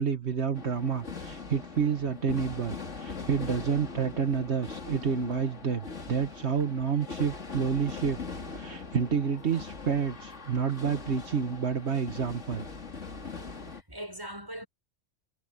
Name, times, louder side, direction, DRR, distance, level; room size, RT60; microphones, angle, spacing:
voice 1, 0.0-8.2 8.5-12.6, right 6 dB, 65° right, 1.6 m, -29 dB
sound 1, 0.5-13.8, left 4 dB, 80° left, 3.0 m, -41 dB
voice 2, 13.7-14.7, equal, 20° right, 5.9 m, -41 dB
omnidirectional pair, 1.2 m